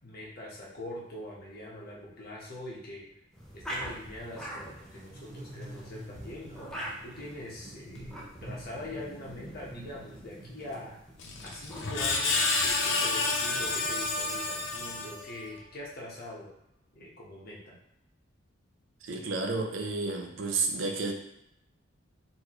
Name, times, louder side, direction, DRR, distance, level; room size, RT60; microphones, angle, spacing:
voice 1, 0.0-3.1 3.5-6.7 7.0-10.9 11.4-16.5 16.9-17.8, left 1 dB, 55° left, -4 dB, 1.3 m, -43 dB
sound 1, 3.3-15.1, equal, 5° left, 0.8 m, -45 dB
sound 2, 4.9-11.7, right 1 dB, 35° right, 0.5 m, -48 dB
Screech, 11.2-15.5, left 3 dB, 70° left, 0.7 m, -29 dB
voice 2, 19.0-21.1, right 3 dB, 85° right, 3 dB, 0.6 m, -31 dB
4.3 x 3.1 x 3.1 m, 0.82 s
head